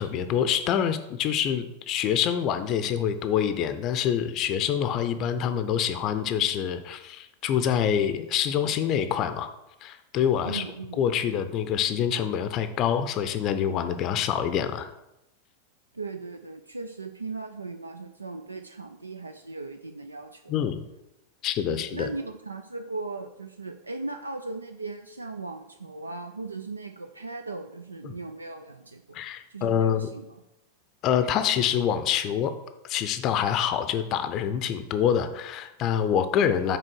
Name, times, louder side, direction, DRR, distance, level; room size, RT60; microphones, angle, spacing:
voice 1, 0.0-9.5 9.8-10.6 11.0-14.9 20.5-20.8 21.4-22.1 28.0-28.2 29.1-30.1 31.0-32.5 32.8-36.8, left 9 dB, 35° left, 10 dB, 0.6 m, -26 dB
voice 2, 10.4-11.0 15.9-20.5 21.7-29.2 29.5-30.4, right 3 dB, 80° right, 6 dB, 0.4 m, -38 dB
6.1 x 4.4 x 6.2 m, 0.89 s
figure-of-eight pair, 90°, 0 cm